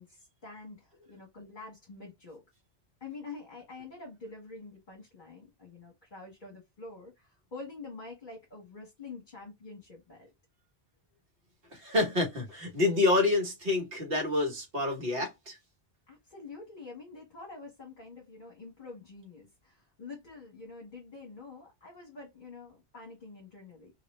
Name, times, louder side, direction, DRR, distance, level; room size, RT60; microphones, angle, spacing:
voice 1, 0.0-2.4 3.0-10.3 16.1-23.9, left 3 dB, 45° left, 1.4 m, -47 dB
voice 2, 11.7-15.6, left 2 dB, 60° right, 1.4 m, -28 dB
3.0 x 2.9 x 3.0 m
omnidirectional pair, 1.1 m